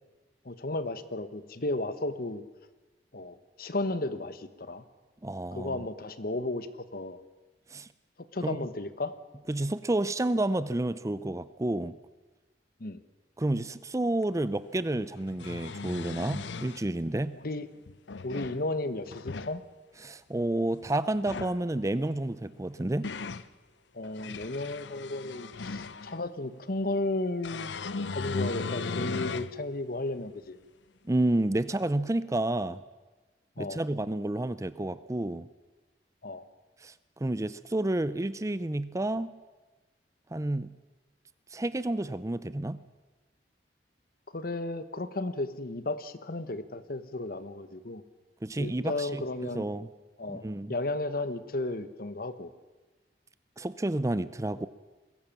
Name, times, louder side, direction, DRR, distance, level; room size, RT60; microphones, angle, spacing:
voice 1, 0.4-2.4 3.1-4.8 5.5-6.7 6.9-7.2 8.3-9.1 12.8-13.0 17.3-17.7 18.2-19.6 23.9-27.8 28.1-30.6 33.6-33.8 36.2-36.4 44.3-48.0 48.6-49.7 50.2-52.5, left 2 dB, 55° left, 12 dB, 1.2 m, -34 dB
voice 2, 5.2-5.8 7.7-7.9 8.4-8.6 9.5-12.0 13.4-17.4 20.0-23.1 31.0-32.8 33.6-35.5 36.8-39.3 40.3-40.7 41.5-42.8 48.4-49.2 49.5-49.9 50.3-50.7 53.6-54.7, right 1 dB, 20° right, 15 dB, 0.5 m, -30 dB
sound 1, 14.2-14.3 15.2-16.8 17.9-18.6 19.1-19.5 21.1-21.6 22.5-23.5 24.0-26.2 27.4-29.5 30.1-30.2 31.7-31.8, left 4 dB, 85° left, 0.7 m, -37 dB
22.0 x 16.0 x 7.4 m, 1.2 s
head